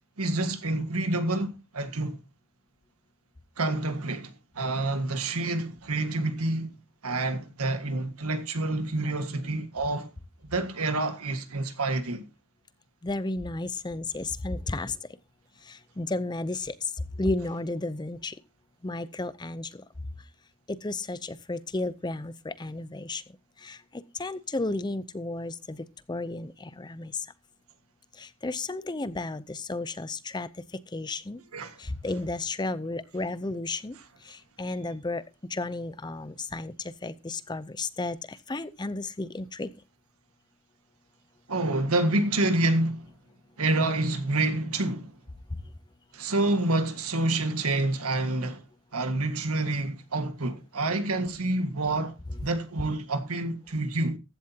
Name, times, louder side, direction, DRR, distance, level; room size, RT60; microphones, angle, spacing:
voice 1, 0.2-2.2 3.6-6.8 7.0-10.1 10.4-12.2 31.5-31.8 33.9-34.1 41.5-43.0 43.6-45.1 46.1-48.6 48.9-54.2, right 2 dB, 80° right, 1.7 m, -28 dB
voice 2, 13.0-14.9 16.0-16.6 17.2-18.3 18.8-19.7 20.8-21.2 21.5-23.2 24.2-25.5 26.1-26.5 26.8-27.1 28.4-30.5 30.9-31.4 32.0-33.9 34.6-35.2 35.5-36.7 37.0-38.2 38.5-39.7, left 2 dB, 20° left, 0.6 m, -32 dB
15.0 x 11.5 x 2.8 m
head